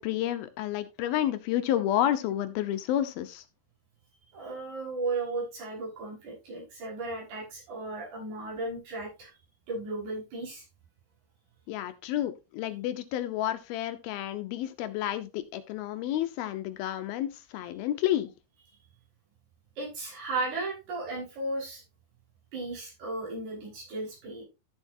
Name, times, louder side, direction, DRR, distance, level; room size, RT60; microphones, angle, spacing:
voice 1, 0.0-3.4 11.7-18.3, left 12 dB, 75° left, 11 dB, 2.5 m, -30 dB
voice 2, 4.3-9.3 9.7-10.6 19.8-21.8 22.5-24.4, right 2 dB, 70° right, -4 dB, 7.3 m, -35 dB
13.5 x 7.5 x 2.7 m, 0.27 s
omnidirectional pair, 4.7 m